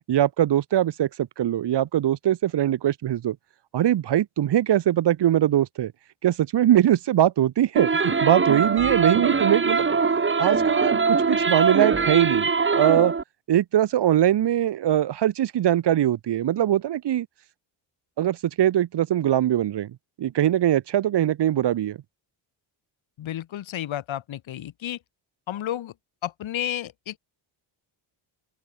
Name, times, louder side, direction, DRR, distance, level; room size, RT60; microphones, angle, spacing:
voice 1, 0.1-3.4 3.7-5.9 6.2-10.0 10.4-13.1 13.5-17.3 18.2-22.0, right 11 dB, 55° right, 1.2 m, -22 dB
sound 1, 7.7-13.2, right 4 dB, 25° right, 1.8 m, -22 dB
voice 2, 23.2-25.0 25.5-25.9 26.2-27.2, left 12 dB, 70° left, 3.6 m, -31 dB
open air
cardioid pair, 80°, 49 cm